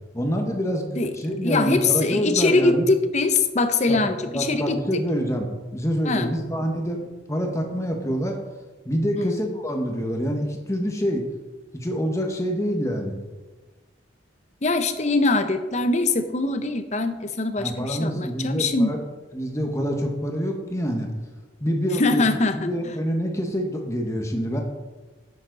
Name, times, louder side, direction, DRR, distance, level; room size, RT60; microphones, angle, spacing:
voice 1, 0.1-0.9 1.2-2.9 3.9-4.0 4.3-8.3 8.8-11.2 11.7-13.1 17.6-19.0 19.3-21.1 21.6-22.2 22.5-24.6, equal, 15° left, 2 dB, 1.2 m, -26 dB
voice 2, 1.4-5.0 6.0-6.3 9.2-9.4 14.6-18.9 22.0-22.7, left 3 dB, 35° left, 9 dB, 0.7 m, -22 dB
10.5 x 7.2 x 4.0 m, 1.2 s
head